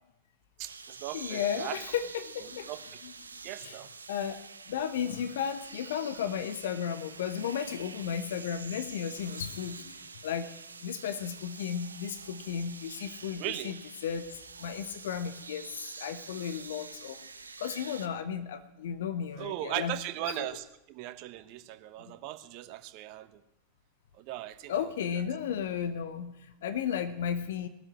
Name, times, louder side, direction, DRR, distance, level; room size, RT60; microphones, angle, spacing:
voice 1, 0.6-1.8 2.7-2.8 3.4-3.9 13.4-13.7 19.4-23.4 24.2-24.7, right 14 dB, 45° right, 11 dB, 1.2 m, -38 dB
sound 1, 0.6-18.1, right 4 dB, 75° right, 0.8 m, -46 dB
voice 2, 1.1-2.7 3.0-3.1 3.6-3.8 4.1-4.4 4.7-10.5 10.8-17.2 17.6-20.0 20.3-20.6 22.1-22.2 24.7-27.7, left 8 dB, 60° left, 11 dB, 1.1 m, -34 dB
19.5 x 7.8 x 9.4 m, 0.87 s
figure-of-eight pair, 90°, 0 cm